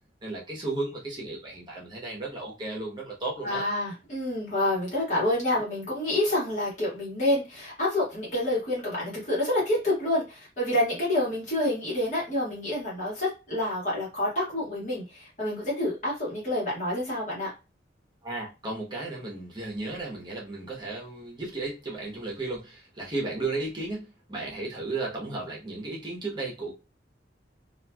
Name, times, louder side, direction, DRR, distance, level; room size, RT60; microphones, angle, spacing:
voice 1, 0.2-3.7 18.2-26.7, right 2 dB, 25° right, -3 dB, 0.9 m, -34 dB
voice 2, 3.4-17.5, left 1 dB, 40° left, -6 dB, 1.5 m, -28 dB
3.0 x 2.5 x 2.2 m, 0.29 s
head